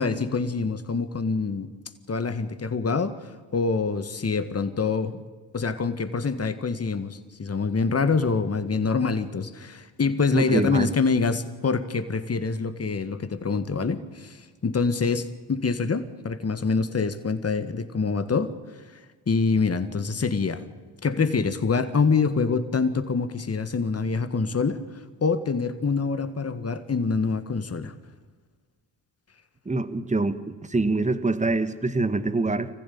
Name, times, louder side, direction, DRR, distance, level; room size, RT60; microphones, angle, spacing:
voice 1, 0.0-1.7 2.1-3.1 3.5-5.2 5.5-18.5 19.3-20.6 21.0-24.8 25.2-27.9, left 4 dB, 30° left, 11 dB, 1.8 m, -25 dB
voice 2, 10.3-10.9 29.6-32.7, right 2 dB, 15° right, 12 dB, 1.5 m, -25 dB
24.5 x 15.0 x 8.7 m, 1.4 s
hypercardioid pair, 55°, 47 cm